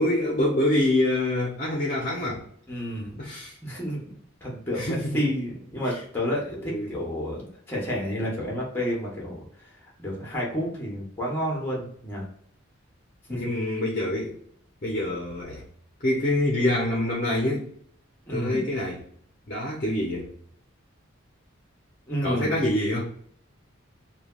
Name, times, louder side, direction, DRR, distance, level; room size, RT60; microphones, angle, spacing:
voice 1, 0.0-2.4 3.2-3.6 4.7-5.4 5.8-6.0 6.6-6.9 13.3-14.4 14.8-15.6 16.0-17.7 18.3-19.0 19.5-20.3 22.2-23.1, left 1 dB, 40° left, -2 dB, 0.6 m, -26 dB
voice 2, 2.7-3.2 3.6-4.0 4.4-9.7 10.0-12.2 13.3-13.5 18.3-18.6 22.1-22.6, equal, 10° left, -3 dB, 0.9 m, -30 dB
3.2 x 2.3 x 2.3 m, 0.62 s
head